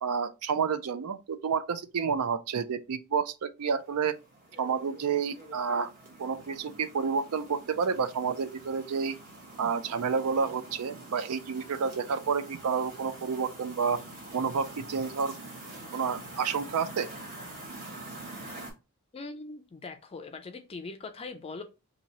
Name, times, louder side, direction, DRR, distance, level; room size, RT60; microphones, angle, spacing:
voice 1, 0.0-4.2 4.6-5.9 6.2-9.2 9.6-14.0 14.3-15.3 15.9-17.1, right 6 dB, 85° right, 0.4 m, -30 dB
sound 1, 3.6-18.7, right 2 dB, 40° right, 1.0 m, -46 dB
voice 2, 19.1-21.6, left 3 dB, 25° left, 0.4 m, -41 dB
2.9 x 2.7 x 4.0 m
head